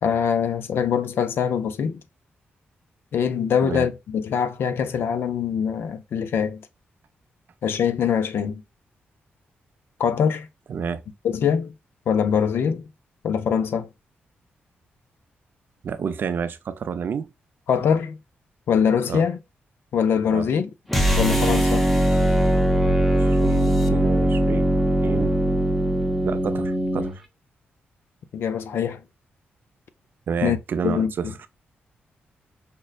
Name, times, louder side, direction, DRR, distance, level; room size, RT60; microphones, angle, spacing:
voice 1, 0.0-2.0 3.1-6.7 7.6-8.6 10.0-10.5 11.2-11.7 12.1-12.9 13.2-13.9 17.7-18.2 18.7-19.4 19.9-20.7 21.2-21.9 28.3-29.0 30.4-30.6 30.8-31.3, left 7 dB, 70° left, 0.5 m, -23 dB
voice 2, 10.7-11.0 15.8-17.3 19.1-19.2 20.3-20.5 23.1-24.7 25.0-25.4 26.2-27.2 30.3-31.3, right 6 dB, 60° right, 0.4 m, -29 dB
sound 1, 20.9-27.2, right 1 dB, 5° left, 0.6 m, -20 dB
5.1 x 2.1 x 2.3 m
cardioid pair, 110°, 4 cm